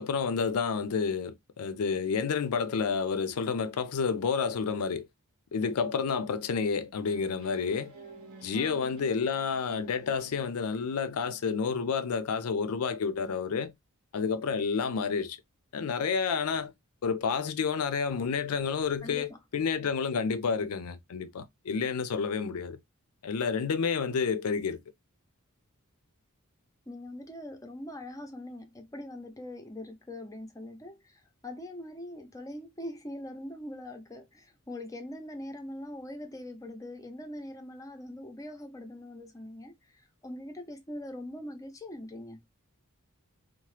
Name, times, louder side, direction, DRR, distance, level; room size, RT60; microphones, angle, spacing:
voice 1, 0.0-5.1 5.5-7.9 8.4-13.7 14.1-15.4 15.7-16.7 17.0-22.8 23.2-24.8, left 5 dB, 85° left, 0.4 m, -30 dB
sound 1, 7.0-11.7, right 2 dB, 80° right, 0.9 m, -52 dB
voice 2, 8.5-9.1 19.0-19.4 26.9-42.4, left 1 dB, 15° left, 0.5 m, -42 dB
2.8 x 2.1 x 3.1 m
head